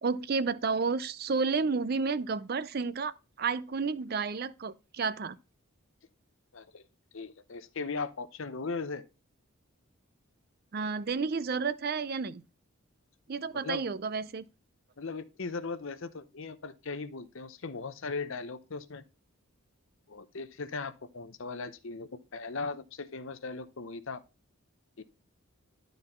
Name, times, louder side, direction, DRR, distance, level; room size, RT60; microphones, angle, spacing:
voice 1, 0.0-3.1 3.4-5.4 10.7-12.4 13.3-14.4, right 4 dB, 45° right, 0.4 m, -31 dB
voice 2, 6.5-6.8 7.1-9.0 13.5-13.8 15.0-19.0 20.1-24.2 25.0-25.1, left 4 dB, 65° left, 0.7 m, -38 dB
11.5 x 4.0 x 4.3 m
head